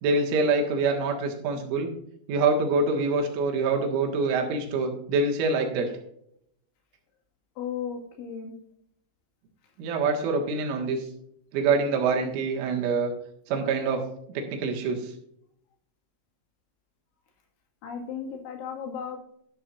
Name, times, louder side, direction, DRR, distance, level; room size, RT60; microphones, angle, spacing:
voice 1, 0.0-1.9 2.3-5.9 9.8-11.0 11.5-13.1 13.5-14.0 14.3-15.1, right 4 dB, 80° right, 2 dB, 4.1 m, -25 dB
voice 2, 7.6-8.5 17.8-19.2, left 7 dB, 70° left, 2 dB, 4.3 m, -35 dB
12.5 x 11.5 x 2.6 m, 0.71 s
omnidirectional pair, 5.7 m